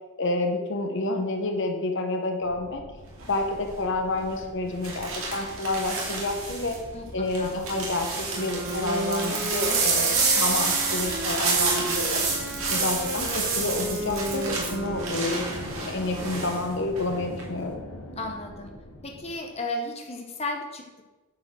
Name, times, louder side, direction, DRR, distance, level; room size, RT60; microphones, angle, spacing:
voice 1, 0.2-2.8 3.3-6.8 7.1-12.2 12.7-15.6 15.8-17.8, left 2 dB, 55° left, 4 dB, 1.1 m, -29 dB
sound 1, 2.4-19.3, left 1 dB, 80° left, 1.4 m, -42 dB
sound 2, 3.2-3.5 4.8-6.8 7.3-16.6 16.9-17.4, right 4 dB, 70° right, 2.6 m, -28 dB
voice 2, 6.9-7.6 18.2-18.7 19.0-21.0, left 2 dB, 30° left, 2 dB, 1.0 m, -34 dB
sound 3, 8.3-16.0, right 1 dB, 45° right, 1.3 m, -34 dB
9.4 x 5.3 x 6.2 m, 1.2 s
head